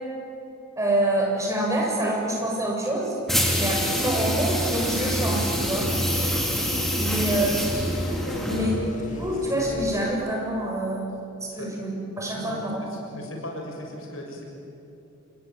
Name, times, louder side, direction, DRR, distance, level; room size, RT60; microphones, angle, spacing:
voice 1, 0.8-3.2 3.6-5.9 7.0-7.5 8.4-8.7 9.2-11.0 11.4-12.8, right 1 dB, 15° right, -1 dB, 7.0 m, -26 dB
sound 1, 3.3-8.9, equal, ahead, 3.5 m, -26 dB
sound 2, 4.9-10.1, left 1 dB, 40° left, 1.7 m, -39 dB
voice 2, 7.0-7.6 8.2-9.5 11.5-11.7 12.3-12.6 12.9-14.4, left 1 dB, 65° left, 1 dB, 6.8 m, -36 dB
27.5 x 21.5 x 9.3 m, 2.7 s
head